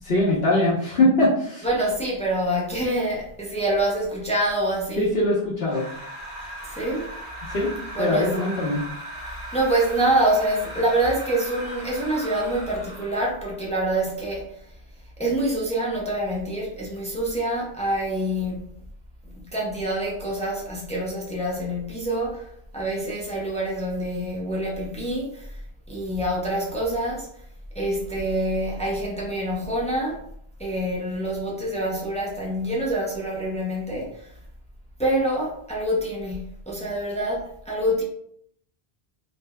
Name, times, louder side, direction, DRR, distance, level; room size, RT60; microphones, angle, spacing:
voice 1, 0.0-1.7 5.0-5.9 7.5-7.7 8.0-8.8, left 1 dB, 70° left, 1.1 m, -22 dB
voice 2, 1.6-5.1 6.6-7.1 8.0-8.3 9.2-14.5 15.2-18.6 19.3-25.6 25.9-27.3 27.7-30.2 30.6-34.3 35.0-38.0, right 1 dB, 10° left, 0.6 m, -26 dB
sound 1, 5.7-13.3, right 1 dB, 55° right, 1.4 m, -38 dB
3.5 x 2.9 x 2.2 m
omnidirectional pair, 1.0 m